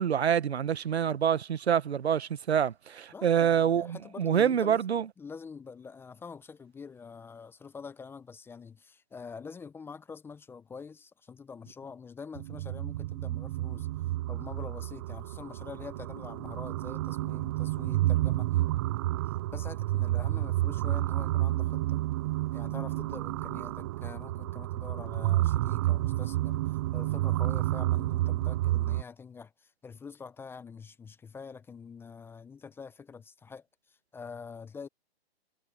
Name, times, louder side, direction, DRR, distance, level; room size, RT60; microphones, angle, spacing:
voice 1, 0.0-5.1, right 8 dB, 85° right, 1.2 m, -26 dB
voice 2, 3.1-4.8 5.2-13.9 14.3-18.6 19.5-22.0 22.5-33.7 34.1-34.9, left 5 dB, 5° left, 0.7 m, -45 dB
sound 1, 12.3-29.0, right 16 dB, 25° right, 0.4 m, -30 dB
hypercardioid pair, 140°, 31 cm